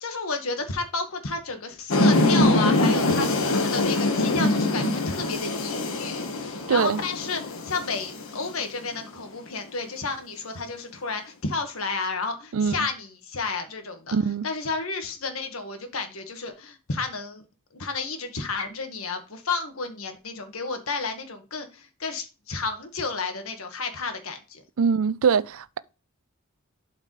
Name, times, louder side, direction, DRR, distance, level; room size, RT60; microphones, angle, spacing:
voice 1, 0.0-14.1 14.4-17.4 17.7-24.6, left 4 dB, 90° left, 1.6 m, -31 dB
sound 1, 1.9-8.9, left 2 dB, 75° left, 1.4 m, -23 dB
voice 2, 6.7-7.0 12.5-12.7 14.1-14.5 24.8-25.8, right 6 dB, 80° right, 0.5 m, -22 dB
11.5 x 5.1 x 3.3 m
head